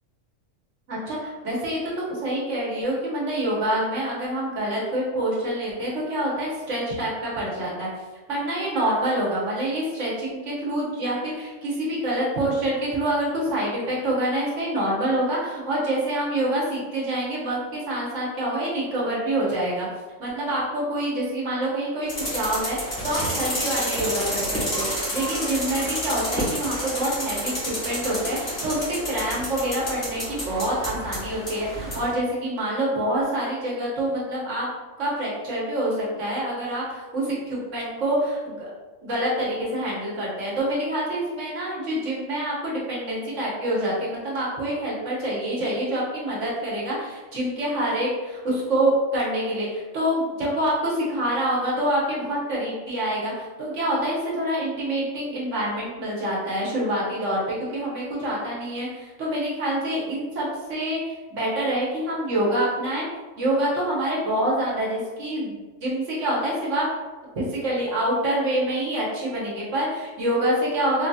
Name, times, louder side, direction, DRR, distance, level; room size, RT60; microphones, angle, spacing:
voice 1, 0.9-7.9 8.3-19.9 20.2-34.7 35.0-38.7 39.0-63.0 63.4-66.9 67.3-71.1, right 1 dB, 70° right, -5 dB, 1.4 m, -26 dB
sound 1, 22.1-32.1, equal, 85° left, 2.1 m, -30 dB
4.4 x 2.7 x 2.3 m, 1.2 s
omnidirectional pair, 1.3 m